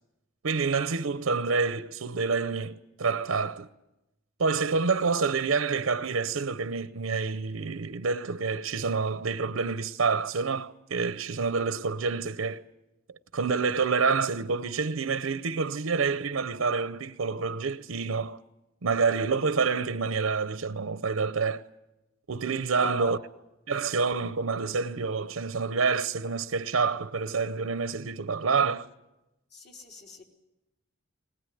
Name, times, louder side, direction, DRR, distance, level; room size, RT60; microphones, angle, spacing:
voice 1, 0.4-3.7 4.4-12.6 13.3-18.4 18.8-21.6 22.3-23.2 23.7-28.9, right 4 dB, 85° right, 0.7 m, -28 dB
voice 2, 22.8-23.2 24.2-24.3 29.5-30.2, left 3 dB, 55° left, 3.5 m, -42 dB
20.5 x 20.0 x 9.3 m
head